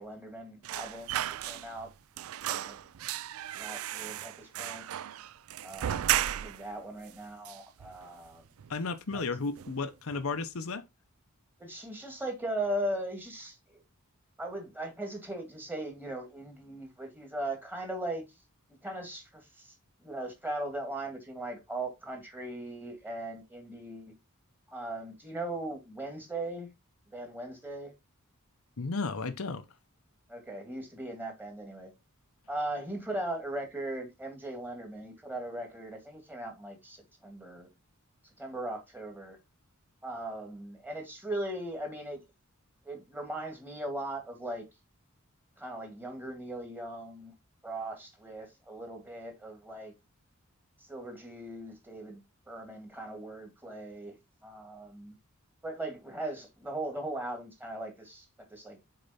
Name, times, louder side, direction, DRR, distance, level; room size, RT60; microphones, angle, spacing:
voice 1, 0.0-1.9 2.5-2.8 3.6-4.9 5.6-8.4 9.1-9.3 11.6-13.8 14.4-18.2 18.8-19.7 20.0-24.1 24.7-26.7 27.1-27.9 30.3-31.9 32.5-37.7 38.4-39.4 40.0-42.2 42.8-44.6 45.6-47.3 47.6-49.9 50.8-52.2 52.5-54.2 54.4-55.1 55.6-58.8, right 1 dB, 10° right, 2.0 m, -39 dB
sound 1, 0.6-1.9 2.2-6.7 7.0-7.1 7.4-8.3 8.6-8.8 9.1-9.8 10.1-10.3, right 12 dB, 70° right, 0.4 m, -35 dB
voice 2, 8.7-10.9 28.8-29.6, left 4 dB, 70° left, 0.8 m, -33 dB
6.7 x 4.3 x 4.2 m
head